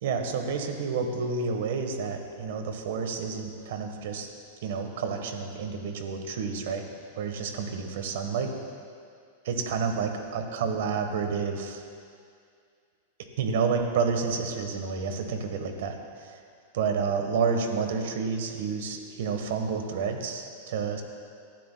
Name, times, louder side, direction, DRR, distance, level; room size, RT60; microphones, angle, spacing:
voice 1, 0.0-4.3 4.6-6.8 7.2-8.5 9.4-11.8 13.4-16.3 16.7-21.0, right 5 dB, 70° right, 5 dB, 1.3 m, -30 dB
18.5 x 12.0 x 2.2 m, 2.3 s
hypercardioid pair, 125°, 0 cm